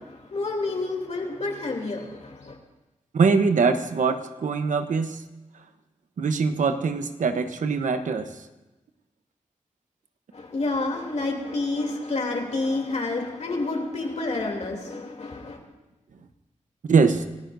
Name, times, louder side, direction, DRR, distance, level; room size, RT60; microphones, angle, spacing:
voice 1, 0.0-2.6 10.3-15.6, left 2 dB, 60° left, 1 dB, 3.0 m, -29 dB
voice 2, 3.1-5.2 6.2-8.3 16.9-17.3, right 5 dB, 85° right, 8 dB, 1.0 m, -22 dB
29.0 x 14.0 x 2.7 m, 1.0 s
wide cardioid pair, 75°, 13 cm